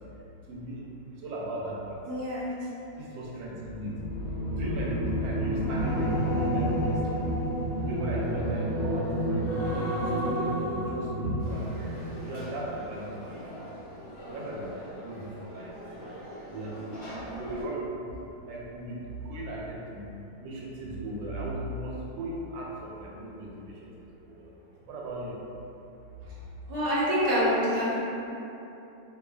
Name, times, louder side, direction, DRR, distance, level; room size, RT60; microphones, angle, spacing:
voice 1, 0.5-0.8 1.2-2.0 3.0-4.0 4.4-7.3 7.8-9.5 10.2-13.5 14.3-16.0 16.5-18.1 18.5-20.1 20.4-23.7 24.2-24.5 24.9-25.4, right 1 dB, 85° right, -3 dB, 1.3 m, -36 dB
voice 2, 2.1-2.7 26.2-26.3 26.7-28.0, equal, 50° right, -10 dB, 0.5 m, -27 dB
sound 1, 3.6-13.0 13.3-13.6, equal, 70° left, 1.2 m, -30 dB
Conversation / Crowd, 11.4-17.6, equal, 45° left, 1.8 m, -43 dB
3.7 x 2.7 x 2.3 m, 2.9 s
omnidirectional pair, 2.0 m